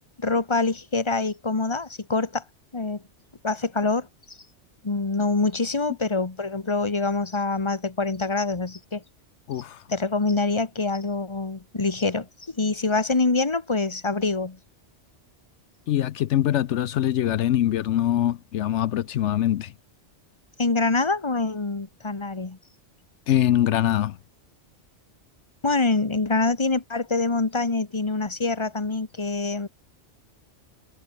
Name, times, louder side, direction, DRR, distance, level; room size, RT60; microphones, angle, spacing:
voice 1, 0.2-2.4 2.7-3.0 3.4-4.4 4.8-9.0 9.9-12.3 12.5-14.6 20.6-22.6 25.6-29.7, left 3 dB, 25° left, 1.4 m, -25 dB
voice 2, 9.5-9.8 15.9-19.7 23.3-24.2, left 12 dB, 75° left, 0.9 m, -23 dB
omnidirectional pair, 1.2 m